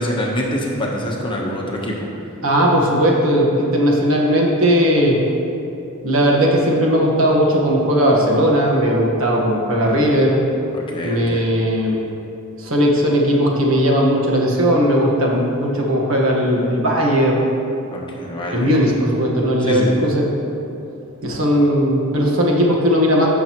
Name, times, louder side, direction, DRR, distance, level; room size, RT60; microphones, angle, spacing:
voice 1, 0.0-2.1 9.8-10.0 10.7-11.4 17.9-18.7 19.6-20.0, equal, 25° left, -2 dB, 1.1 m, -25 dB
voice 2, 2.4-5.2 6.0-10.4 11.0-12.0 12.6-17.4 18.5-20.3 21.2-23.3, equal, 65° right, -1 dB, 1.5 m, -17 dB
14.5 x 6.4 x 3.0 m, 2.8 s
head